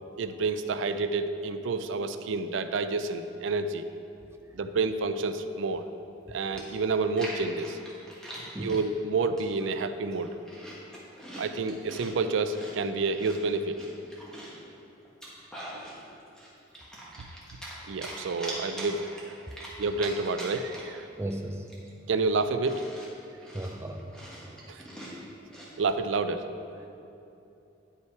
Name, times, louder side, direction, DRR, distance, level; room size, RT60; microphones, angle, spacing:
voice 1, 0.2-3.9 4.5-5.9 6.3-7.8 8.6-10.3 11.4-13.8 17.9-19.1 19.8-21.0 22.1-22.8 24.7-24.8 25.8-26.5, right 3 dB, 80° right, 10 dB, 0.4 m, -29 dB
Chewing mastication, 6.2-6.3 6.6-8.8 9.4-9.7 10.1-12.1 12.5-14.6 15.0-16.0 16.3-17.8 18.0-21.0 21.3-21.4 21.7-25.7, equal, 5° left, 1.2 m, -43 dB
voice 2, 21.2-21.7 23.5-24.1, right 1 dB, 15° right, 4 dB, 0.4 m, -35 dB
9.6 x 5.7 x 4.6 m, 2.8 s
head